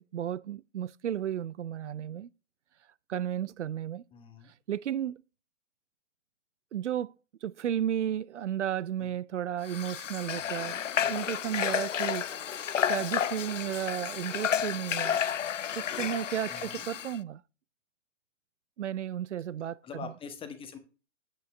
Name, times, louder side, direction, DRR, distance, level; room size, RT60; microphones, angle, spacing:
voice 1, 0.0-2.3 3.1-4.0 4.7-5.2 6.7-7.1 7.4-10.8 11.1-12.3 12.8-15.2 15.8-17.4 18.8-20.1, right 10 dB, 75° right, 0.5 m, -33 dB
voice 2, 4.1-4.5 9.0-9.2 16.5-16.8 19.8-20.8, left 6 dB, 15° left, 1.3 m, -44 dB
Water / Water tap faucet, 9.6-17.2, left 9 dB, 85° left, 0.6 m, -31 dB
8.9 x 8.8 x 3.3 m
figure-of-eight pair, 120°, 36 cm